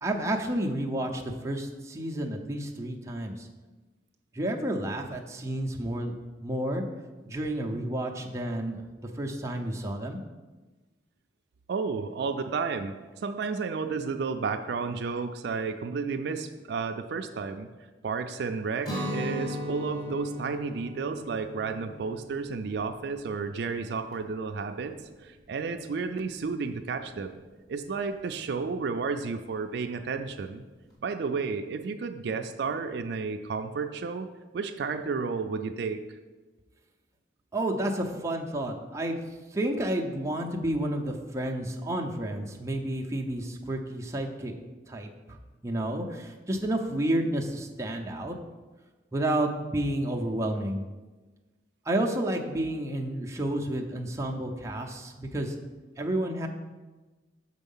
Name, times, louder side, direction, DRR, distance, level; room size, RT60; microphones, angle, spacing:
voice 1, 0.0-3.5 4.3-6.1 6.4-6.8 7.2-8.8 9.2-10.2 37.5-39.2 39.5-44.5 44.9-45.4 45.6-48.4 49.1-50.8 51.9-55.6 56.0-56.5, right 1 dB, 15° right, 1 dB, 0.6 m, -30 dB
voice 2, 11.7-17.7 18.0-24.9 25.2-27.4 27.7-30.6 31.0-34.3 34.5-36.0, right 5 dB, 60° right, 7 dB, 0.4 m, -32 dB
Guitar, 18.8-24.7, left 1 dB, 20° left, 1.7 m, -37 dB
6.2 x 4.5 x 5.4 m, 1.2 s
head